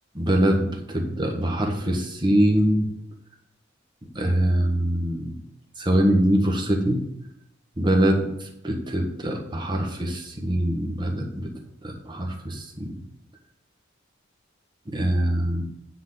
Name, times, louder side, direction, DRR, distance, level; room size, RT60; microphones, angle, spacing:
voice 1, 0.2-0.7 0.9-2.9 4.1-5.3 5.8-7.0 7.8-8.3 8.6-11.2 12.1-12.6 14.9-15.6, right 1 dB, 25° right, 2 dB, 1.4 m, -23 dB
9.3 x 4.0 x 7.3 m, 0.80 s
head